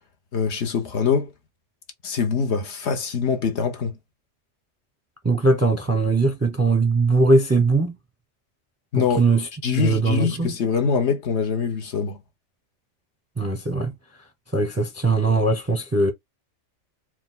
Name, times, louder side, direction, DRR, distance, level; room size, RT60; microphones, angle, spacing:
voice 1, 0.3-1.3 2.0-3.9 8.9-9.2 9.6-12.2, left 6 dB, 60° left, 1.1 m, -23 dB
voice 2, 5.2-7.9 8.9-10.5 13.4-13.9 14.5-16.1, right 3 dB, 15° right, 0.6 m, -20 dB
4.5 x 2.2 x 3.8 m
omnidirectional pair, 1.3 m